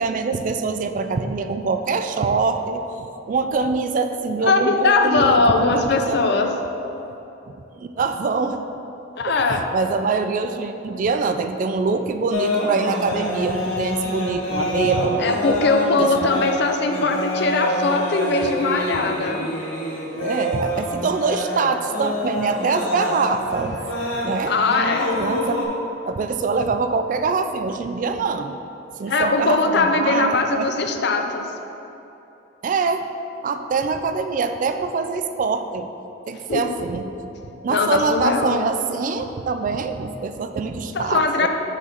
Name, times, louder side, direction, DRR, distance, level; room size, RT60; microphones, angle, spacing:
voice 1, 0.0-6.6 7.8-8.6 9.5-15.6 16.0-16.2 20.1-23.8 24.2-24.5 25.2-25.7 26.1-28.6 29.0-30.7 32.6-33.0 33.4-35.9 36.3-37.1 37.6-41.5, right 4 dB, 40° right, 8 dB, 0.3 m, -24 dB
voice 2, 4.4-6.5 9.2-9.6 15.2-19.5 24.5-25.1 29.1-31.5 36.5-36.6 37.7-38.7 40.9-41.5, left 3 dB, 60° left, 5 dB, 0.5 m, -20 dB
sound 1, 12.3-25.7, left 1 dB, 85° left, 1.1 m, -26 dB
6.0 x 5.7 x 4.0 m, 3.0 s
head